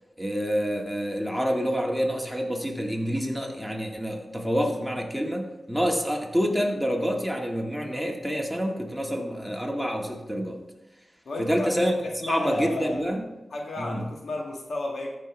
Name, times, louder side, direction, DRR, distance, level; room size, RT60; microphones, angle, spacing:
voice 1, 0.2-10.6 11.4-11.9 12.2-13.2 13.8-14.0, equal, ahead, 0 dB, 1.9 m, -27 dB
voice 2, 11.2-11.7 12.0-13.0 13.5-15.1, left 2 dB, 80° left, 0 dB, 1.5 m, -32 dB
13.5 x 5.6 x 3.4 m, 1.0 s
cardioid pair, 45°, 0 cm